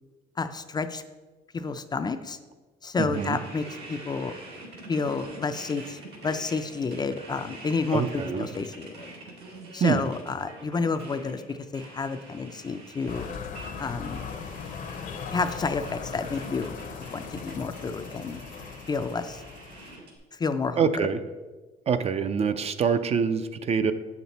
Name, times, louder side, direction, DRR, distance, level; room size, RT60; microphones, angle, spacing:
voice 1, 0.4-1.0 1.5-2.4 2.8-4.3 4.9-9.1 9.7-13.3 13.8-14.2 15.3-16.8 17.1-18.4 18.9-19.4 20.3-21.1, left 4 dB, 25° left, 9 dB, 0.4 m, -30 dB
voice 2, 3.0-3.4 7.9-8.5 9.8-10.1 20.8-21.2 21.9-23.9, right 6 dB, 40° right, 11 dB, 0.4 m, -25 dB
sound 1, 3.1-20.2, right 2 dB, 75° right, 2.2 m, -45 dB
sound 2, 13.1-19.9, left 6 dB, 50° left, 0.7 m, -39 dB
7.6 x 5.9 x 4.1 m, 1.3 s
cardioid pair, 110°, 17 cm